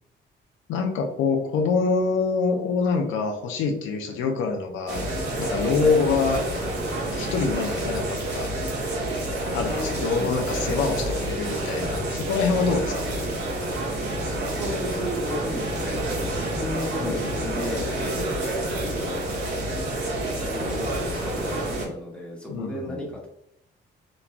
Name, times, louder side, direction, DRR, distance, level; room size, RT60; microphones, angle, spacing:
voice 1, 0.7-5.1 5.4-6.4 7.1-8.5 9.5-13.1 17.0-17.3 22.5-23.0, left 4 dB, 80° left, 4 dB, 0.5 m, -25 dB
sound 1, 4.9-21.8, right 1 dB, 60° right, 1.0 m, -28 dB
voice 2, 9.4-10.4 10.8-11.3 14.3-18.4 18.7-19.2 20.4-23.3, left 1 dB, 5° left, -3 dB, 0.9 m, -34 dB
2.9 x 2.2 x 2.4 m, 0.78 s
cardioid pair, 90°, 20 cm